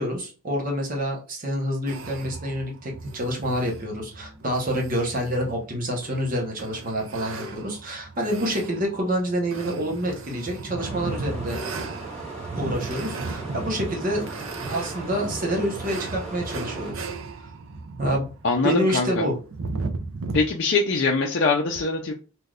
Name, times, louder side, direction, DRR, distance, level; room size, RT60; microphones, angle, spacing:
voice 1, 0.0-11.6 12.5-14.3 14.7-17.1 18.0-18.3 18.6-19.3, equal, 40° right, 0 dB, 1.0 m, -27 dB
sound 1, 1.9-20.4, right 3 dB, 60° right, 0.5 m, -36 dB
sound 2, 10.8-16.9, right 2 dB, ahead, 1.7 m, -38 dB
voice 2, 18.4-19.1 20.3-22.1, left 4 dB, 55° left, -1 dB, 0.5 m, -22 dB
3.3 x 2.6 x 2.4 m, 0.35 s
head